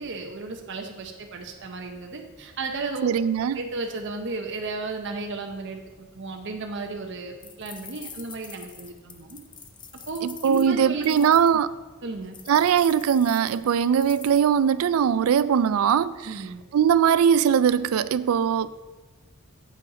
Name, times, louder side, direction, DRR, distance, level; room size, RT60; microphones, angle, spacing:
voice 1, 0.0-3.1 3.5-9.4 10.1-11.3 12.0-12.4 16.2-16.6, right 3 dB, 55° right, 0.8 m, -34 dB
voice 2, 3.0-3.6 10.2-11.7 12.5-16.3 16.7-18.7, right 8 dB, 80° right, 0.4 m, -21 dB
sound 1, 7.4-11.6 12.3-14.4, left 6 dB, 20° left, 0.5 m, -44 dB
7.8 x 5.7 x 4.9 m
head